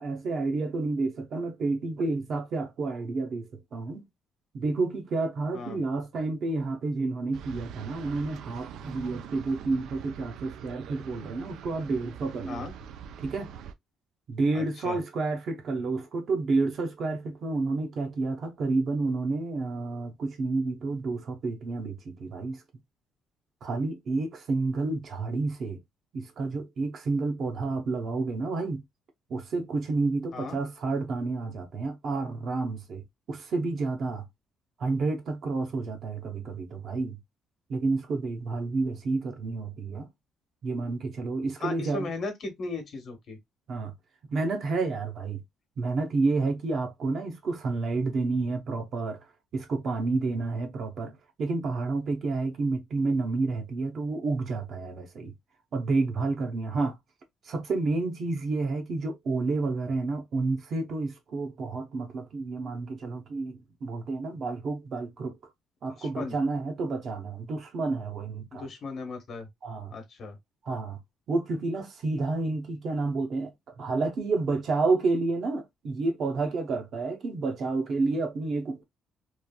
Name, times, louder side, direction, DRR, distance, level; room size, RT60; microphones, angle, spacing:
voice 1, 0.0-4.0 4.5-12.7 13.2-13.5 14.3-22.6 23.6-25.8 26.1-28.8 29.3-33.0 33.3-34.2 34.8-37.2 37.7-40.1 40.6-42.1 43.7-43.9 44.3-45.4 45.8-49.2 49.5-51.1 51.4-55.3 55.7-57.0 57.5-65.3 65.8-68.7 69.6-69.9 70.6-71.0 71.3-73.5 73.8-78.8, right 3 dB, 50° right, 0.8 m, -30 dB
sound 1, 7.3-13.7, right 8 dB, 75° right, 0.4 m, -44 dB
voice 2, 14.5-15.0 30.3-30.6 41.6-43.4 50.4-50.6 66.0-66.3 68.5-69.5 69.9-70.4, left 3 dB, 50° left, 1.1 m, -37 dB
3.2 x 2.5 x 2.2 m
cardioid pair, 125°, 0 cm